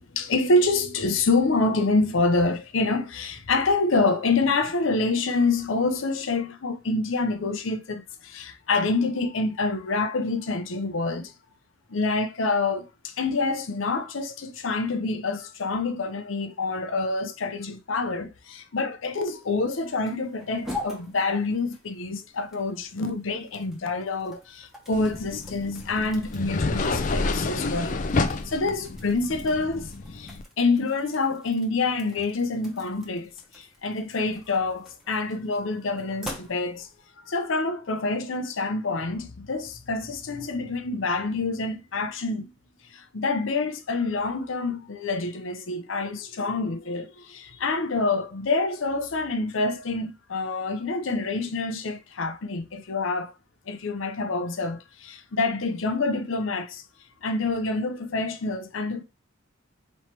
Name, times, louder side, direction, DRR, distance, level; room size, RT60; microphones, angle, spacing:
voice 1, 0.0-11.3 11.9-28.0 28.4-36.9 37.3-42.5 42.9-53.3 53.7-56.8 57.2-59.0, left 3 dB, 80° left, 0.7 m, -27 dB
sound 1, 19.0-37.1, left 1 dB, ahead, 0.9 m, -45 dB
sound 2, 24.9-30.4, left 3 dB, 40° left, 0.4 m, -29 dB
4.5 x 3.1 x 2.9 m
head